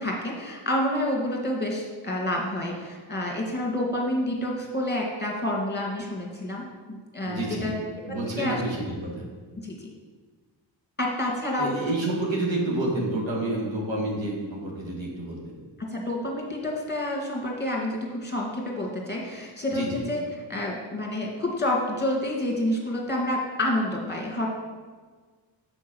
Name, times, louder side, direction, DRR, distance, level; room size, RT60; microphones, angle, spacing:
voice 1, 0.0-7.7 8.4-8.5 9.6-9.9 11.0-11.7 15.8-20.2 20.5-24.5, left 1 dB, 20° left, -1 dB, 1.9 m, -28 dB
voice 2, 7.3-7.8 8.1-9.3 11.6-15.4 19.7-20.0, right 2 dB, 75° right, -2 dB, 2.0 m, -29 dB
6.3 x 4.8 x 6.1 m, 1.5 s
wide cardioid pair, 95°, 46 cm